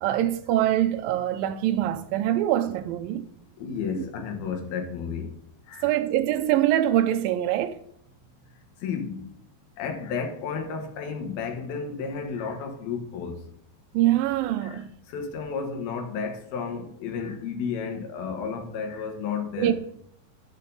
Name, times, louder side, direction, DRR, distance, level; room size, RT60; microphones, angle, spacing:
voice 1, 0.0-3.2 4.0-4.1 5.8-7.8 13.9-14.9 19.6-19.7, right 12 dB, 80° right, 2.3 m, -24 dB
voice 2, 3.6-5.3 5.7-5.9 8.8-9.3 9.8-13.4 14.6-14.8 15.1-19.7, left 6 dB, 90° left, 3.3 m, -32 dB
8.3 x 6.6 x 5.3 m
omnidirectional pair, 4.2 m